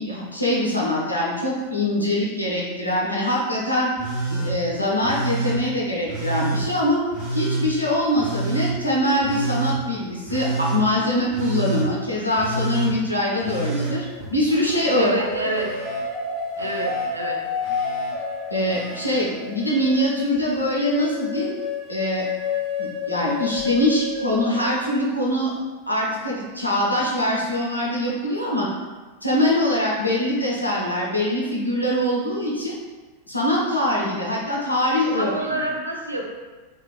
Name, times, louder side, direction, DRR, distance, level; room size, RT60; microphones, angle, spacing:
voice 1, 0.0-3.9 4.3-7.0 7.3-15.1 18.5-21.5 21.9-22.2 22.8-25.5 25.9-28.7 29.2-32.8 33.3-35.7, left 1 dB, 90° left, -4 dB, 0.6 m, -23 dB
Telephone, 4.0-4.5 5.0-5.6 6.1-6.6 7.1-7.7 8.2-8.7 9.2-9.8 10.3-10.8 11.3-11.9 12.3-12.9 13.4-15.0 15.2-16.0 16.6-17.1 17.6-18.1 18.7-19.2 20.4-20.5, right 3 dB, 30° right, 1.1 m, -28 dB
sound 1, 13.7-14.5 15.2-25.2, left 4 dB, 5° right, 0.5 m, -30 dB
voice 2, 14.9-15.7 16.6-17.4 35.1-36.2, right 1 dB, 85° right, -1 dB, 0.4 m, -27 dB
3.0 x 2.5 x 2.3 m, 1.3 s
figure-of-eight pair, 90°, 0 cm